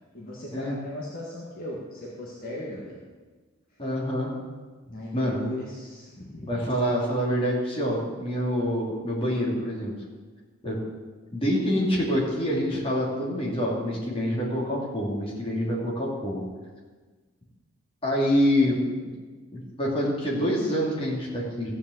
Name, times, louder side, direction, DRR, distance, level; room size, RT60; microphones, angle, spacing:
voice 1, 0.1-3.0 4.9-6.5, left 1 dB, 40° left, -5 dB, 1.8 m, -38 dB
voice 2, 3.8-4.3 5.1-5.4 6.5-9.9 10.6-10.8 11.3-16.4 18.0-18.8 19.5-21.7, equal, 25° left, -4 dB, 2.8 m, -26 dB
14.5 x 5.2 x 8.0 m, 1.4 s
head